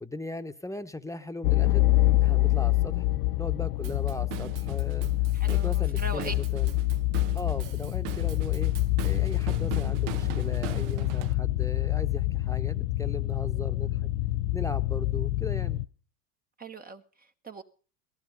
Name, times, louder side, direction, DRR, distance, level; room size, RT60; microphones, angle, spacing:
voice 1, 0.0-1.9 2.2-3.1 3.4-5.1 5.5-6.7 7.3-8.7 9.0-14.1 14.5-15.8, left 2 dB, 5° left, 1.1 m, -38 dB
sound 1, 1.4-15.8, left 17 dB, 60° left, 0.7 m, -26 dB
Drum kit / Drum, 3.8-11.3, right 15 dB, 50° right, 0.9 m, -41 dB
voice 2, 5.3-6.3 16.6-17.6, right 3 dB, 20° right, 1.1 m, -40 dB
18.0 x 15.0 x 5.3 m
hypercardioid pair, 95°, 46 cm